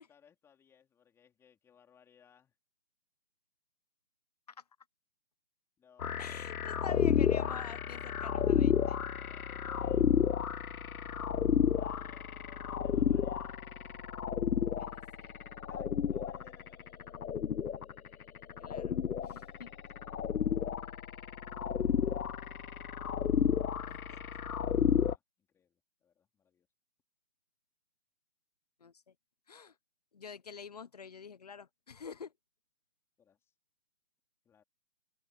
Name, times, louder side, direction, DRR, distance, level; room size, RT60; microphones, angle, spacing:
voice 1, 0.0-2.5 5.8-7.2 9.2-10.2 11.7-13.6 15.7-16.9 21.3-22.8 25.1-26.7 33.2-33.5 34.4-34.6, left 8 dB, 5° left, 3.7 m, -63 dB
sound 1, 6.0-25.2, left 8 dB, 65° left, 0.6 m, -32 dB
voice 2, 6.2-9.0 14.5-14.9 15.2-15.3 18.6-19.0 19.2-19.7 23.9-24.2 28.8-28.9 29.5-29.7 30.1-32.3, left 6 dB, 25° left, 1.3 m, -47 dB
open air
figure-of-eight pair, 155°, 48 cm